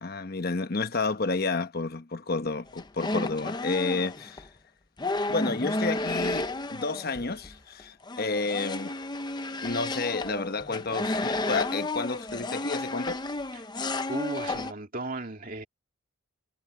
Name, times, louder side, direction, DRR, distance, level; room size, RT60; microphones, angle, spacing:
voice 1, 0.0-4.5 5.3-8.9 9.6-13.2, left 3 dB, 45° left, 1.1 m, -30 dB
sound 1, 2.7-4.5 5.0-7.5 7.8-14.7, left 2 dB, 20° left, 0.7 m, -32 dB
voice 2, 14.1-15.6, right 2 dB, 40° right, 2.5 m, -35 dB
head